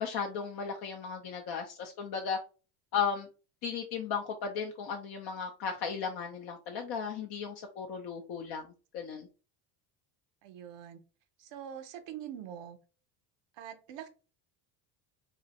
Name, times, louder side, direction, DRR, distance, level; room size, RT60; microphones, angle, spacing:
voice 1, 0.0-2.4 2.9-3.3 3.6-9.3, left 6 dB, 55° left, 2 dB, 0.6 m, -35 dB
voice 2, 10.4-11.0 11.4-12.8 13.6-14.1, right 9 dB, 65° right, 8 dB, 0.6 m, -44 dB
2.5 x 2.1 x 3.9 m, 0.35 s
supercardioid pair, 100°, 47 cm